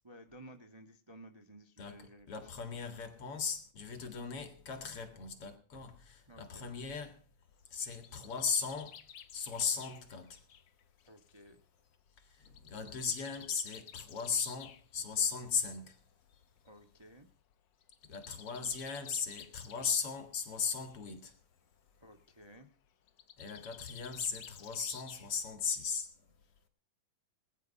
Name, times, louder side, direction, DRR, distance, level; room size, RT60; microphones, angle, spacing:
voice 1, 0.0-2.3 4.0-4.3 6.3-6.6 11.1-11.6 16.6-17.3 22.0-22.7, right 1 dB, 25° right, 0.5 m, -55 dB
voice 2, 1.8-7.2 7.7-9.1 9.3-10.4 12.2-16.0 18.0-21.4 23.4-26.3, left 6 dB, 50° left, 2.7 m, -37 dB
Bird, 7.6-11.4 12.4-14.8 15.9-16.0 16.3-16.4 16.7-16.8 17.8-20.2 20.5-21.0 23.1-25.5, left 8 dB, 85° left, 1.0 m, -53 dB
20.0 x 11.0 x 5.5 m
omnidirectional pair, 3.7 m